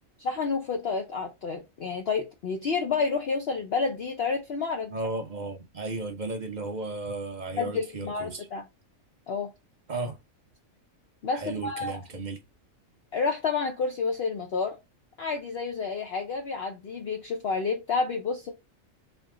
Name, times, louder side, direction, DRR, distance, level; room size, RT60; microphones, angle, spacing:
voice 1, 0.2-4.9 7.6-8.6 9.3-9.5 11.2-12.0 13.1-14.8 15.2-18.5, left 4 dB, 55° left, 0.8 m, -29 dB
voice 2, 4.9-8.5 9.9-10.2 11.3-12.4, right 2 dB, 40° right, 0.8 m, -34 dB
3.5 x 2.9 x 3.6 m
omnidirectional pair, 1.4 m